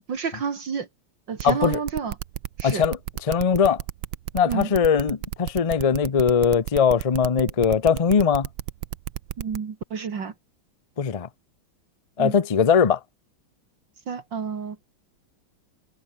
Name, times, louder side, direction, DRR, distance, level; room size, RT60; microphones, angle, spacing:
voice 1, 0.1-0.9 1.3-2.1 2.6-2.9 4.5-4.7 9.4-10.3 12.2-12.3 14.1-14.8, right 6 dB, 65° right, 2.7 m, -29 dB
voice 2, 1.4-1.8 2.6-3.0 3.3-3.8 4.3-8.5 11.0-11.3 12.2-13.0, left 6 dB, 60° left, 0.3 m, -20 dB
sound 1, 1.4-9.6, right 13 dB, 80° right, 1.7 m, -32 dB
omnidirectional pair, 2.2 m